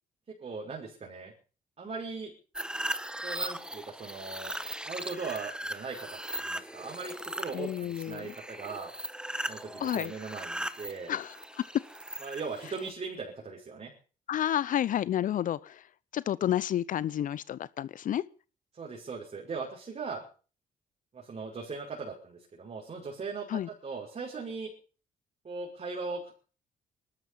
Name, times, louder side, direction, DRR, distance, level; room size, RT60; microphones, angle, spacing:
voice 1, 0.4-1.3 1.8-2.3 3.2-4.5 4.8-8.9 9.5-11.1 12.2-13.9 18.7-20.2 21.1-24.7 25.4-26.3, right 4 dB, 45° right, 5.5 m, -39 dB
sound 1, 2.6-12.9, right 1 dB, 5° right, 1.6 m, -38 dB
voice 2, 7.5-8.3 9.8-10.1 11.1-11.3 14.3-15.8 16.1-18.2 23.5-23.7, left 11 dB, 60° left, 0.7 m, -30 dB
19.5 x 13.0 x 5.5 m
supercardioid pair, 60°, 15 cm